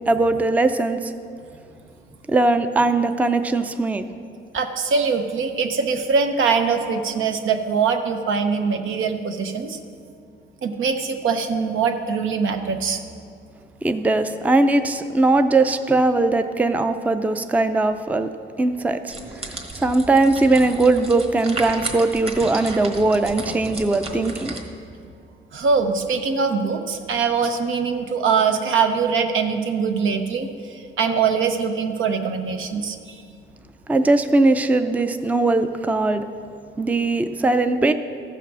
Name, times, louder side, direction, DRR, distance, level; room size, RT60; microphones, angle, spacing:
voice 1, 0.1-1.1 2.3-4.0 13.8-18.3 18.6-24.5 33.9-36.3 36.8-37.9, right 2 dB, 10° right, 9 dB, 0.4 m, -20 dB
voice 2, 4.5-9.8 10.6-13.0 25.5-33.2, right 5 dB, 80° right, 6 dB, 0.9 m, -22 dB
sound 1, 19.1-24.6, right 2 dB, 30° right, 1.5 m, -33 dB
14.5 x 5.8 x 6.1 m, 2.3 s
cardioid pair, 110°, 20 cm